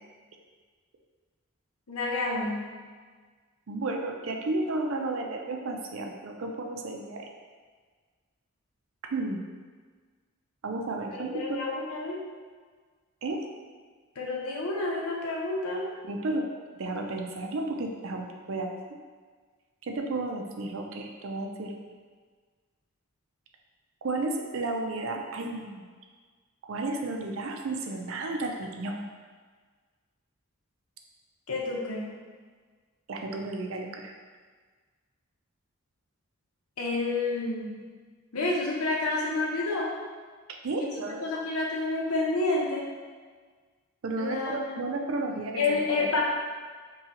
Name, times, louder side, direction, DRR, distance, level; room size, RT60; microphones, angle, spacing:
voice 1, 1.9-2.8 11.1-12.2 14.2-15.9 31.5-32.2 36.8-37.9 38.3-40.0 40.8-40.9 41.2-42.9 44.2-44.8 45.6-46.2, left 3 dB, 90° left, -2 dB, 0.8 m, -29 dB
voice 2, 3.7-7.3 9.1-9.4 10.6-11.6 13.2-13.4 16.0-16.4 16.8-18.7 19.8-21.7 24.0-25.9 26.7-29.0 33.1-34.1 40.6-41.3 44.0-46.1, right 2 dB, 65° right, 2 dB, 0.5 m, -32 dB
5.5 x 2.3 x 2.9 m, 1.5 s
head